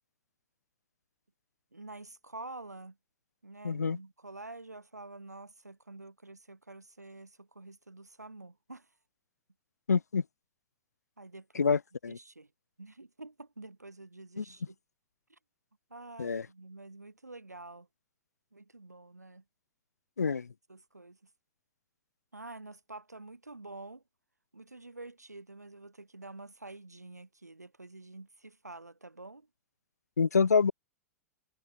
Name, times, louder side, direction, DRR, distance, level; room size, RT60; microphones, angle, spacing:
voice 1, 1.7-3.0 3.4-8.9 11.2-11.8 12.0-12.5 12.8-14.8 15.3-15.4 15.9-17.9 18.5-19.4 20.7-21.2 22.3-24.0 24.5-29.5, right 2 dB, 90° right, 6.7 m, -48 dB
voice 2, 3.6-4.0 9.9-10.2 11.5-12.2 14.4-14.5 16.2-16.5 20.2-20.5 30.2-30.7, left 5 dB, 80° left, 0.9 m, -27 dB
figure-of-eight pair, 100°, 9 cm